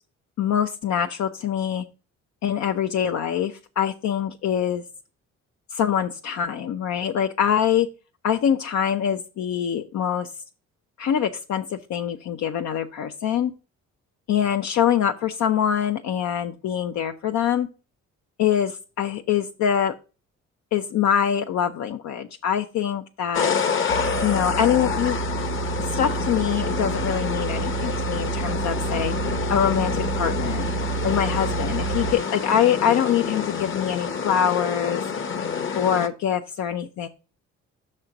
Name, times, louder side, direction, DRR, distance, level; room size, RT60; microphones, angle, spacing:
voice 1, 0.4-1.8 2.4-4.8 5.7-7.9 8.2-10.3 11.0-13.5 14.3-17.7 18.4-19.9 20.7-23.6 24.2-25.2 25.9-29.1 29.5-30.7 31.0-35.0 35.7-37.1, left 9 dB, 65° left, 5 dB, 0.6 m, -24 dB
sound 1, 23.3-36.1, left 6 dB, 40° left, 1.0 m, -28 dB
sound 2, 23.9-32.1, right 7 dB, 80° right, 1.0 m, -29 dB
5.9 x 4.4 x 6.3 m, 0.34 s
cardioid pair, 90°, 30 cm